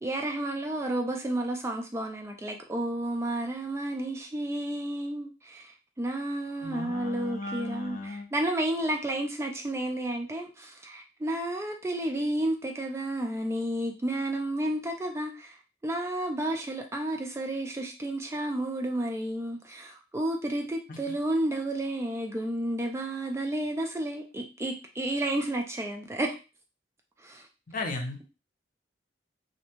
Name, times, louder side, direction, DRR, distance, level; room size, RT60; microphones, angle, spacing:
voice 1, 0.0-15.6 15.8-26.4 27.2-27.4, right 1 dB, 15° right, 3 dB, 0.3 m, -31 dB
voice 2, 6.6-8.3 27.7-28.2, left 2 dB, 50° left, 3 dB, 0.6 m, -35 dB
2.6 x 2.1 x 2.8 m, 0.30 s
head